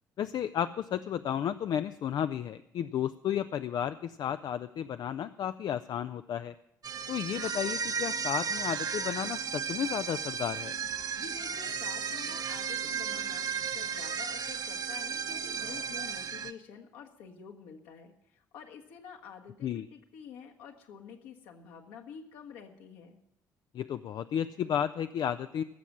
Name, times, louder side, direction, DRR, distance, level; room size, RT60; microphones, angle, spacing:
voice 1, 0.2-6.5 7.1-10.7 19.6-19.9 23.7-25.6, left 9 dB, 45° left, 12 dB, 0.5 m, -33 dB
sound 1, 6.8-16.5, right 6 dB, 40° right, 0.9 m, -34 dB
voice 2, 11.1-23.2, left 7 dB, 60° left, 2 dB, 1.6 m, -48 dB
15.5 x 7.2 x 9.7 m, 0.84 s
figure-of-eight pair, 50°, 10 cm